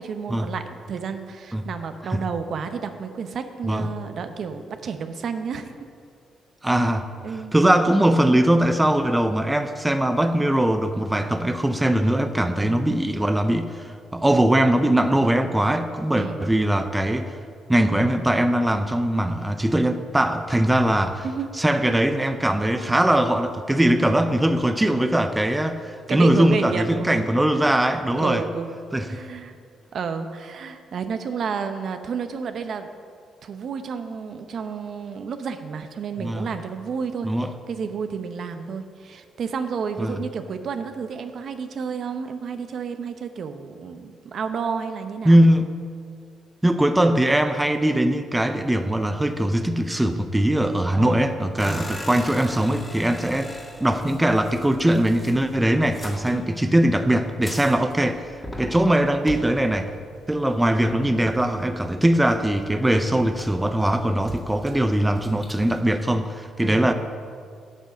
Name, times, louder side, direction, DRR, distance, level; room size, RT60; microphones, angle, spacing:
voice 1, 0.0-5.7 7.2-7.5 12.6-13.0 16.2-16.5 21.2-21.6 26.1-27.3 27.8-28.8 29.1-29.5 29.9-32.9 33.4-37.3 37.7-45.4 51.0-51.3 51.6-52.0 66.6-66.9, right 6 dB, 60° right, 8 dB, 0.8 m, -31 dB
voice 2, 6.6-7.0 7.5-17.4 17.7-21.3 21.6-28.4 28.9-29.1 36.2-36.5 37.2-37.5 40.0-40.2 45.2-45.7 46.6-59.9 60.3-66.9, right 1 dB, 10° right, 8 dB, 0.6 m, -21 dB
sound 1, 51.6-65.8, left 1 dB, 15° left, 1.8 m, -41 dB
9.0 x 8.1 x 6.4 m, 2.2 s
cardioid pair, 90°, 0 cm